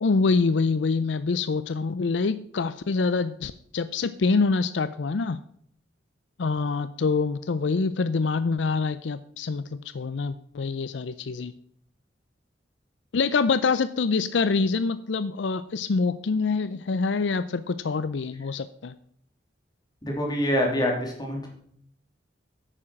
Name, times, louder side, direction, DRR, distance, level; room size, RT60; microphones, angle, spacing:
voice 1, 0.0-5.4 6.4-11.5 13.1-19.0, left 4 dB, 70° left, 14 dB, 0.5 m, -25 dB
voice 2, 20.0-21.5, equal, 20° left, -1 dB, 3.2 m, -25 dB
9.9 x 8.7 x 5.8 m, 0.65 s
head